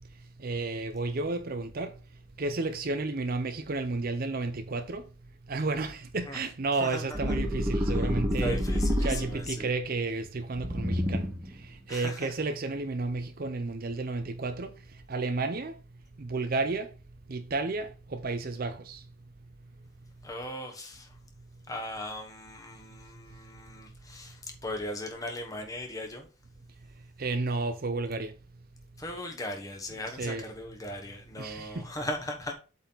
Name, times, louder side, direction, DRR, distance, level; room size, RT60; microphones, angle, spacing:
voice 1, 0.4-1.9 2.4-5.1 5.5-8.6 9.0-11.3 11.9-14.7 15.1-15.7 16.2-16.9 17.3-19.0 27.2-28.3 30.2-30.5 31.4-31.9, right 3 dB, 40° right, 0.5 m, -32 dB
voice 2, 6.8-7.3 7.8-8.0 8.4-9.7 11.9-12.3 20.2-21.2 21.7-26.3 29.0-32.5, left 1 dB, 15° left, 1.2 m, -38 dB
sound 1, 7.1-9.6 10.5-11.5, equal, 15° right, 1.2 m, -28 dB
8.0 x 4.2 x 4.0 m
head